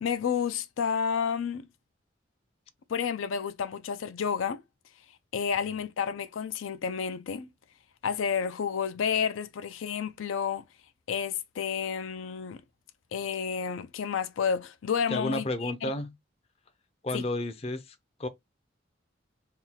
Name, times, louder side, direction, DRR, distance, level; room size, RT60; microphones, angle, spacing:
voice 1, 0.0-1.7 2.9-4.6 5.3-7.5 8.0-10.6 11.1-12.6 13.1-15.9 17.1-17.3, left 7 dB, 90° left, 0.4 m, -30 dB
voice 2, 15.1-16.1 17.0-17.8 18.2-18.3, left 1 dB, 30° left, 0.4 m, -31 dB
3.6 x 2.3 x 2.8 m
head